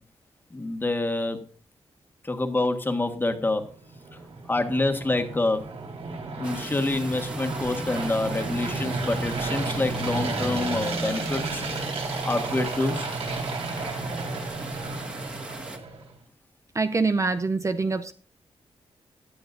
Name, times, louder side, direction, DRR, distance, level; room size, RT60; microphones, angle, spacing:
voice 1, 0.5-1.4 2.2-3.6 4.5-5.6 6.4-11.6 12.2-13.1, left 2 dB, 20° left, 6 dB, 1.6 m, -27 dB
sound 1, 3.8-16.1, right 3 dB, 70° right, 4.2 m, -32 dB
sound 2, 6.4-15.8, right 1 dB, 10° right, 1.7 m, -40 dB
voice 2, 16.7-18.1, right 3 dB, 30° right, 9 dB, 0.6 m, -25 dB
17.5 x 11.0 x 2.6 m, 0.42 s
wide cardioid pair, 150°, 10 cm